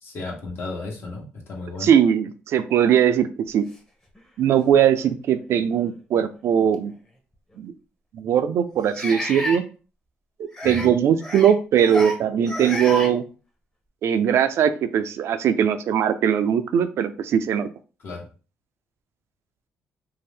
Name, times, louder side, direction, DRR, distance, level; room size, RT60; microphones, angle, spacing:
voice 1, 0.0-1.9 10.6-10.9 18.0-18.3, left 3 dB, 55° left, 0 dB, 1.0 m, -34 dB
voice 2, 1.8-3.6 4.4-6.9 7.6-7.7 8.1-9.6 10.6-13.2 14.0-17.7, right 8 dB, 65° right, 10 dB, 0.4 m, -20 dB
sound 1, 4.1-4.2 5.0-5.1 6.7-6.8 8.9-9.6 10.5-10.9 11.2-11.5 11.8-12.2 12.4-13.1, equal, 10° left, 0.8 m, -30 dB
2.7 x 2.0 x 3.3 m, 0.35 s
cardioid pair, 80°, 5 cm